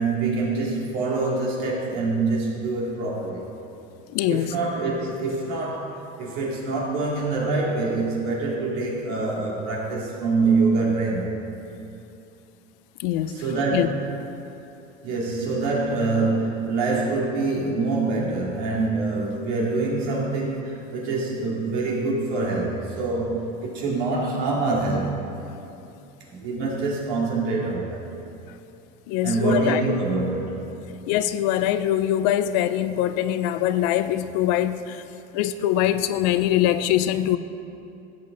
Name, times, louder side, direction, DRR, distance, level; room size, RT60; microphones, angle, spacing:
voice 1, 0.0-3.4 4.3-11.3 13.3-14.1 15.0-25.2 26.3-28.0 29.2-30.9, right 3 dB, 75° right, -3 dB, 2.7 m, -25 dB
voice 2, 4.1-4.5 13.0-13.4 13.7-13.9 29.1-29.9 31.1-35.0 35.3-37.4, left 12 dB, 75° left, 12 dB, 0.5 m, -23 dB
13.5 x 8.4 x 4.0 m, 2.7 s
cardioid pair, 140°, 21 cm